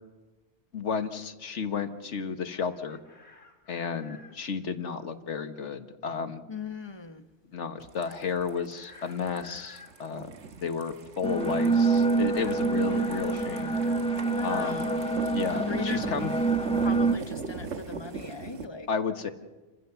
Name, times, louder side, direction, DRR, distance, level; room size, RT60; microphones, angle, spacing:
voice 1, 0.7-3.0 3.7-6.4 7.5-10.3 10.6-13.8 14.4-14.9 15.3-16.3 18.9-19.3, left 6 dB, 85° left, 1.6 m, -32 dB
Chicken rooster, 2.5-4.4 8.2-9.9 12.4-14.1, left 4 dB, 60° left, 4.0 m, -51 dB
voice 2, 6.5-7.2 14.3-15.2 15.7-16.2 16.8-18.9, left 4 dB, 25° left, 1.0 m, -39 dB
sound 1, 7.8-18.7, right 5 dB, 80° right, 1.5 m, -41 dB
sound 2, 11.2-17.1, right 3 dB, 5° left, 1.2 m, -26 dB
29.0 x 15.5 x 6.9 m
omnidirectional pair, 1.2 m